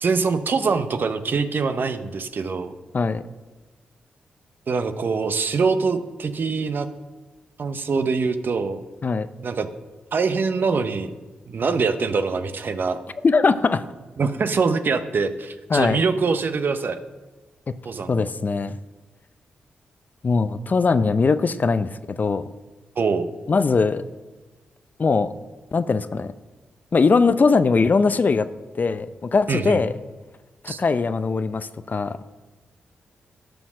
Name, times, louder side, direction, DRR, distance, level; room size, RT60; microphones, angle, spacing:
voice 1, 0.0-2.7 4.7-6.9 7.6-8.8 9.4-9.7 10.1-11.1 11.5-13.0 14.2-17.0 17.8-18.3 23.0-23.3 29.5-29.8 30.7-30.8, right 4 dB, 55° right, 10 dB, 0.8 m, -24 dB
voice 2, 13.2-13.8 15.7-16.0 17.7-17.8 18.1-18.7 20.2-22.4 23.5-24.0 25.0-25.3 25.7-26.3 26.9-28.5 28.8-29.9 30.6-32.2, left 4 dB, 45° left, 13 dB, 0.6 m, -20 dB
11.5 x 6.2 x 6.2 m, 1.2 s
supercardioid pair, 45°, 4 cm